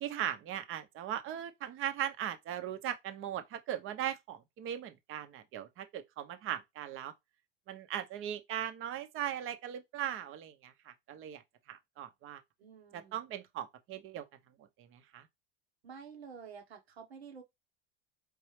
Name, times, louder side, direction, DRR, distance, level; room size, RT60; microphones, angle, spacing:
voice 1, 0.0-7.1 7.7-11.4 11.7-12.4 12.9-14.2 14.8-15.3, right 11 dB, 40° right, 0.8 m, -39 dB
voice 2, 12.6-13.2 15.8-17.4, right 6 dB, 85° right, 1.2 m, -50 dB
4.5 x 3.2 x 3.2 m
hypercardioid pair, 85°, 31 cm